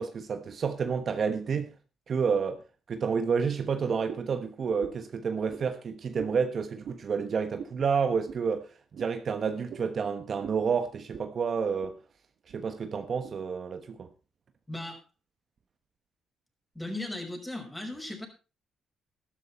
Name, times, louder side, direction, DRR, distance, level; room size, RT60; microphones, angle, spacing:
voice 1, 0.0-1.7 2.1-2.6 2.9-12.0 12.5-14.1, right 6 dB, 50° right, 1.2 m, -29 dB
sound 1, 4.1-4.4 4.8-5.1 5.5-5.7 6.2-6.4 6.8-7.0 7.6-7.8 8.3-8.4 8.9-9.1 9.7-9.9 10.4-10.6 11.1-11.3 11.6-12.0 12.5-12.6 13.2-13.4, right 7 dB, 65° right, 1.8 m, -42 dB
voice 2, 14.7-15.0 16.7-18.3, left 1 dB, 10° left, 5.7 m, -37 dB
13.0 x 12.5 x 4.3 m
cardioid pair, 90°, 0 cm